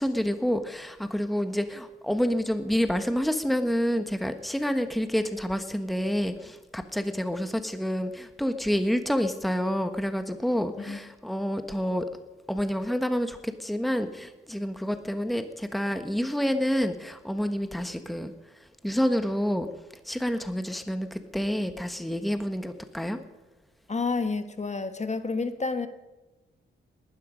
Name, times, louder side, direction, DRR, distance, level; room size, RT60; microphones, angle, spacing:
voice 1, 0.0-12.0 12.5-18.3 18.8-19.7 20.0-23.2, equal, ahead, 8 dB, 1.3 m, -28 dB
voice 2, 23.9-25.9, left 4 dB, 35° left, 9 dB, 1.4 m, -29 dB
19.5 x 12.5 x 5.2 m, 1.1 s
cardioid pair, 60°, 21 cm